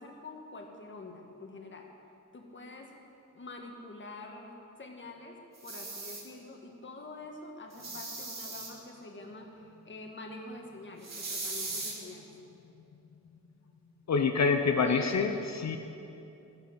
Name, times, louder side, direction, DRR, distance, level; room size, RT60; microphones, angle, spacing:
voice 1, 0.0-1.9 2.3-2.9 3.3-4.5 4.8-12.3 14.8-15.3, left 2 dB, 35° left, 1 dB, 1.8 m, -46 dB
sound 1, 5.5-6.2 7.7-8.7 11.0-11.9, right 3 dB, 55° right, 2.5 m, -38 dB
voice 2, 14.1-15.8, left 5 dB, 60° left, 5 dB, 0.8 m, -26 dB
14.0 x 8.5 x 7.9 m, 2.8 s
wide cardioid pair, 155°, 31 cm